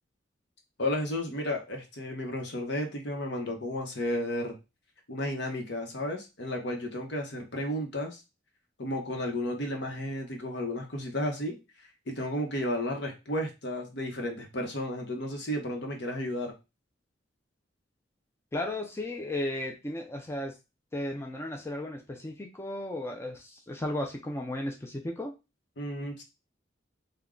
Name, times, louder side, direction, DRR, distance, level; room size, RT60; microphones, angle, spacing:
voice 1, 0.8-4.6 5.1-8.2 8.8-11.6 12.1-16.5 25.8-26.2, left 1 dB, 65° left, 2 dB, 0.9 m, -33 dB
voice 2, 18.5-20.5 20.9-25.3, left 1 dB, 15° left, 2 dB, 0.4 m, -35 dB
3.5 x 2.2 x 3.7 m, 0.26 s
head